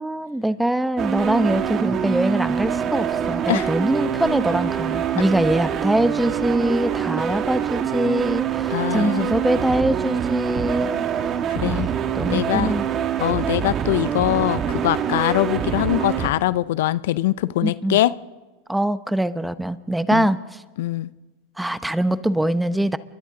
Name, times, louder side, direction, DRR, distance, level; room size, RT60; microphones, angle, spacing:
voice 1, 0.0-11.0 11.6-12.9 17.6-18.0 18.7-20.4 21.6-23.0, right 1 dB, 5° right, 13 dB, 0.8 m, -23 dB
sound 1, 1.0-16.3, right 8 dB, 35° right, 1.7 m, -25 dB
voice 2, 8.7-9.3 11.5-11.9 12.3-12.8 13.2-18.1 20.1-20.3 20.8-21.1, left 15 dB, 75° left, 17 dB, 0.5 m, -22 dB
29.5 x 23.0 x 3.8 m, 1.2 s
hypercardioid pair, 110°, 0 cm